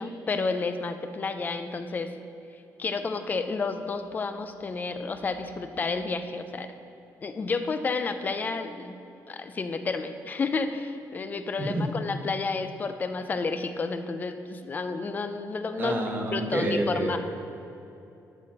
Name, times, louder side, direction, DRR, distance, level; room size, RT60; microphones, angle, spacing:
voice 1, 0.0-2.1 2.8-6.7 7.2-8.9 9.3-16.0 16.3-17.2, left 4 dB, 25° left, 8 dB, 0.5 m, -31 dB
voice 2, 15.8-17.2, right 1 dB, 30° right, 2 dB, 1.1 m, -28 dB
11.5 x 4.2 x 7.4 m, 2.8 s
cardioid pair, 165°, 7 cm